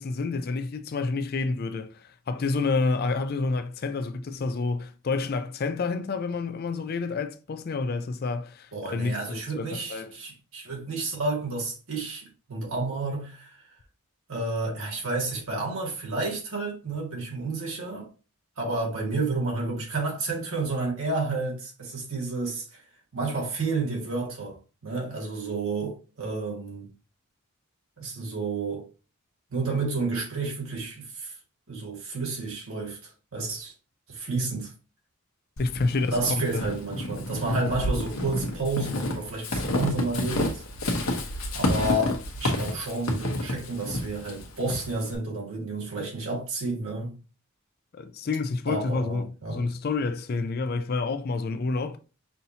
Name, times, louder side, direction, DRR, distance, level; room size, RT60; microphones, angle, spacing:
voice 1, 0.0-10.1 35.6-36.2 36.5-36.6 47.9-52.0, left 3 dB, 45° left, 0.4 m, -29 dB
voice 2, 8.7-13.5 14.3-18.1 18.6-22.8 23.1-24.6 24.8-26.9 28.0-28.9 29.5-31.3 31.7-33.7 34.1-34.7 36.1-41.0 41.5-47.1 48.7-49.6, right 3 dB, 70° right, 1.7 m, -30 dB
Walk footsteps / Squeak, 35.6-45.2, left 1 dB, 70° left, 1.0 m, -30 dB
5.5 x 2.7 x 2.8 m
head